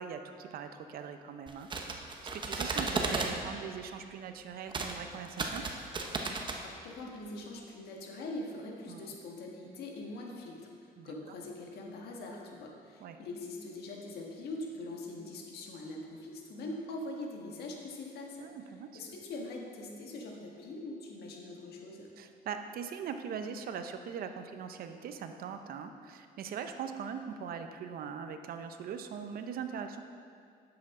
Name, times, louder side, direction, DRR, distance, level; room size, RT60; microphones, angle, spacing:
voice 1, 0.0-2.0 2.3-5.6 8.9-9.1 11.0-11.1 13.0-13.2 18.4-18.9 22.2-30.0, right 7 dB, 60° right, 7 dB, 0.7 m, -41 dB
sound 1, 1.5-3.3 4.7-4.9 5.2-6.6, right 3 dB, 30° right, 0.9 m, -34 dB
voice 2, 6.6-18.5 18.9-22.1, left 2 dB, 70° left, 0 dB, 1.5 m, -43 dB
10.0 x 7.8 x 3.7 m, 2.3 s
cardioid pair, 110°, 17 cm